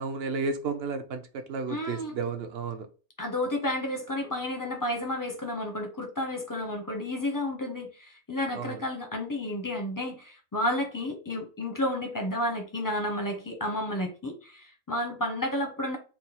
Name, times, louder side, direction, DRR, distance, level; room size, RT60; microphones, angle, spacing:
voice 1, 0.0-2.9 8.5-8.8, right 4 dB, 65° right, 0.6 m, -32 dB
voice 2, 1.7-2.1 3.2-16.0, left 1 dB, 25° left, 0.4 m, -31 dB
4.5 x 2.1 x 4.1 m
omnidirectional pair, 1.5 m